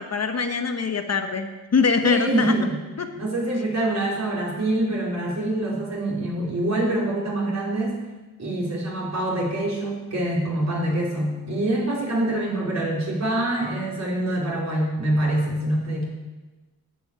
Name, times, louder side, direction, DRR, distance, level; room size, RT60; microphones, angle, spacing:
voice 1, 0.0-2.5 3.0-3.1, left 5 dB, 45° left, 6 dB, 1.2 m, -23 dB
voice 2, 2.0-2.8 3.1-8.0 8.4-16.0, right 1 dB, 45° right, -3 dB, 4.6 m, -25 dB
11.5 x 8.4 x 9.0 m, 1.2 s
cardioid pair, 100°, 37 cm